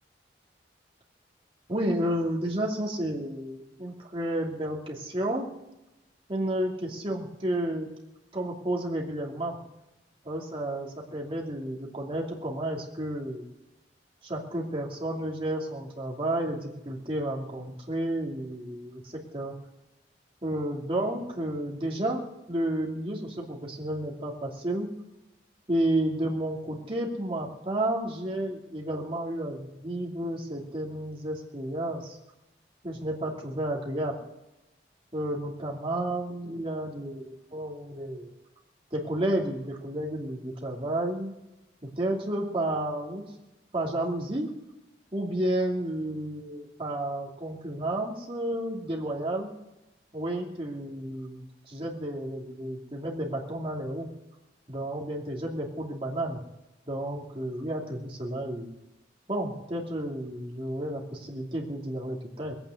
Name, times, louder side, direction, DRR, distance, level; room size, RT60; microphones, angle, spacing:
voice 1, 1.7-5.5 6.3-7.9 8.3-9.6 10.2-13.5 14.2-19.5 20.4-24.9 25.7-32.2 32.8-34.1 35.1-38.3 38.9-41.3 41.8-43.3 43.7-44.5 45.1-49.5 50.1-54.1 54.7-56.4 56.9-58.7 59.3-62.5, right 1 dB, 30° right, -2 dB, 2.7 m, -31 dB
20.0 x 9.1 x 7.9 m, 1.0 s
head